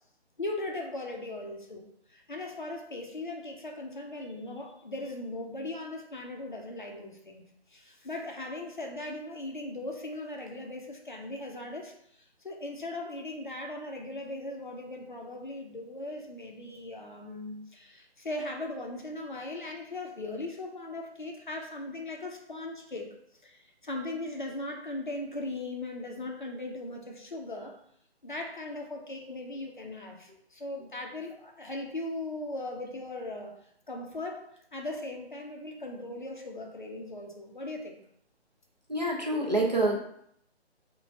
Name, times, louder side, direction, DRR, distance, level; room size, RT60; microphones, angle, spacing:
voice 1, 0.4-1.8 2.1-7.4 7.7-11.9 12.2-23.1 23.4-27.8 28.2-33.5 33.9-34.5 34.7-38.0, left 2 dB, 50° left, 1 dB, 0.4 m, -38 dB
voice 2, 38.9-40.1, right 2 dB, 40° right, -1 dB, 0.4 m, -27 dB
3.0 x 2.1 x 2.7 m, 0.70 s
hypercardioid pair, 180°, 33 cm